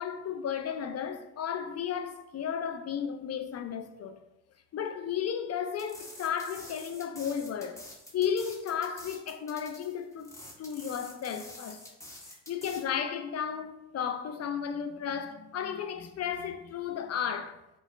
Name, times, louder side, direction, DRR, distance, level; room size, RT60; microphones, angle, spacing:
voice 1, 0.0-4.2 4.7-7.8 8.1-10.3 10.6-11.8 12.5-17.6, left 8 dB, 50° left, 0.6 m, -34 dB
sound 1, 5.7-12.8, left 1 dB, 10° left, 1.2 m, -48 dB
5.0 x 2.3 x 4.3 m
supercardioid pair, 75°, 32 cm